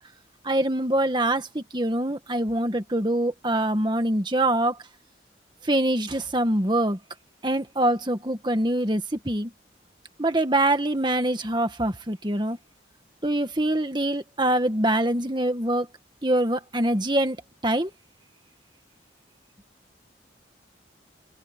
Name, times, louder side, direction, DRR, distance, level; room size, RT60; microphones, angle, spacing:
voice 1, 0.5-4.7 5.7-7.0 7.4-9.5 10.2-12.6 13.2-15.9 16.2-17.4 17.6-17.9, right 1 dB, 25° right, 1.8 m, -24 dB
head